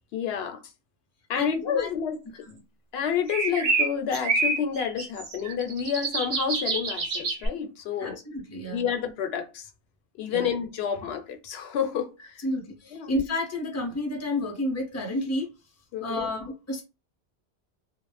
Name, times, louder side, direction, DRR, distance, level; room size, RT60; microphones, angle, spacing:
voice 1, 0.1-0.6 1.3-2.2 2.9-8.2 8.7-9.7 10.2-12.4 12.9-13.1 15.9-16.3, left 7 dB, 70° left, 0.8 m, -29 dB
voice 2, 1.3-1.9 2.4-2.6 8.0-8.9 10.3-10.5 12.4-15.5 16.0-16.8, left 1 dB, 20° left, 0.4 m, -31 dB
sound 1, 3.3-7.5, right 3 dB, 60° right, 0.9 m, -27 dB
2.5 x 2.0 x 3.1 m
omnidirectional pair, 1.1 m